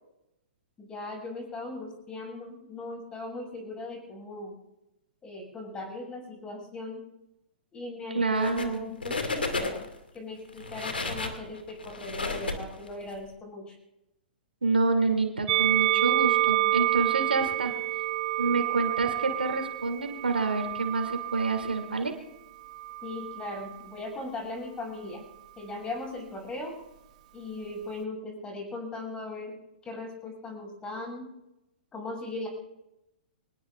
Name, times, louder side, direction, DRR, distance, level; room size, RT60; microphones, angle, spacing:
voice 1, 0.8-4.6 5.2-7.0 7.7-9.9 10.1-13.7 23.0-25.2 25.6-26.7 27.3-29.6 29.8-31.3 31.9-32.5, left 2 dB, 15° left, 1 dB, 7.2 m, -38 dB
voice 2, 8.1-8.8 14.6-17.7 18.4-22.1, right 3 dB, 80° right, 4 dB, 2.9 m, -28 dB
sound 1, 8.3-8.8 9.0-10.0 10.5-13.2, left 3 dB, 80° left, 2.4 m, -33 dB
Musical instrument, 15.5-21.9 22.7-23.7, right 15 dB, 45° right, 0.8 m, -28 dB
25.0 x 19.5 x 2.6 m, 0.89 s
figure-of-eight pair, 115°, 5 cm